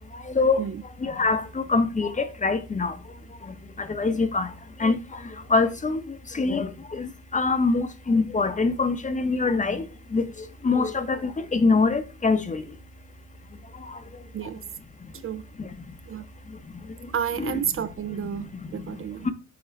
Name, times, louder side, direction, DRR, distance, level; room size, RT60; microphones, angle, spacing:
voice 1, 1.0-2.9 3.9-4.5 4.8-5.0 5.5-6.0 6.4-6.7 7.0-7.1 7.3-9.8 10.1-10.2 10.6-11.2 11.5-12.6 17.4-17.6, left 4 dB, 25° left, 0.8 m, -23 dB
voice 2, 17.1-19.3, right 8 dB, 45° right, 0.5 m, -31 dB
5.8 x 3.1 x 5.2 m
cardioid pair, 90°, 30 cm